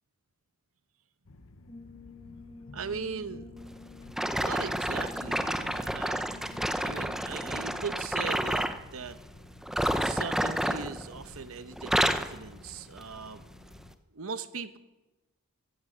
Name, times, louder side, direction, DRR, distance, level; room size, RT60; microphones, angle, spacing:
sound 1, 1.2-14.0, left 2 dB, 65° left, 0.8 m, -53 dB
Brass instrument, 1.7-8.1, left 3 dB, 25° left, 1.7 m, -50 dB
voice 1, 2.7-3.5 4.3-6.3 6.8-9.2 10.0-13.4 14.1-14.8, right 5 dB, 70° right, 13 dB, 0.9 m, -39 dB
sound 2, 4.1-8.8 9.6-11.4 11.7-12.4 13.0-13.2 13.8-13.9, equal, ahead, 0.5 m, -30 dB
15.5 x 13.5 x 6.2 m, 1.1 s
head